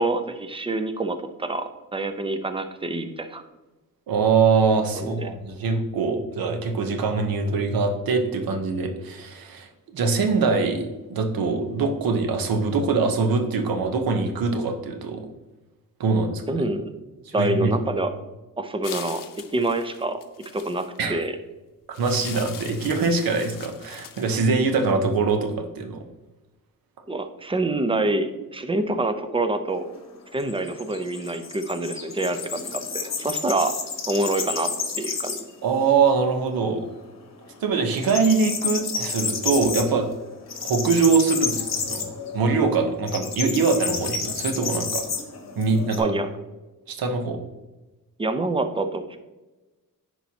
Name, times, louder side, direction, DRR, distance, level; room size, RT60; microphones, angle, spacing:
voice 1, 0.0-3.4 4.9-5.3 16.5-17.0 17.3-18.1 18.6-19.2 19.5-20.2 20.5-21.4 27.1-29.9 30.3-33.7 34.1-34.7 35.0-35.4 46.0-46.3 48.2-49.2, right 2 dB, 15° right, 8 dB, 0.6 m, -26 dB
voice 2, 4.1-15.2 16.0-16.4 17.4-17.8 21.0-21.2 22.0-26.0 35.6-36.9 37.6-40.1 40.6-45.0 45.6-46.1 46.9-47.4, right 4 dB, 90° right, 5 dB, 1.0 m, -23 dB
sound 1, 18.8-21.0 21.9-24.9, left 9 dB, 65° left, 0.7 m, -41 dB
sound 2, 29.7-35.6 36.0-36.1 36.5-37.3 37.5-46.0, left 5 dB, 50° left, 1.1 m, -31 dB
10.0 x 4.5 x 2.8 m, 1.1 s
cardioid pair, 105°, 34 cm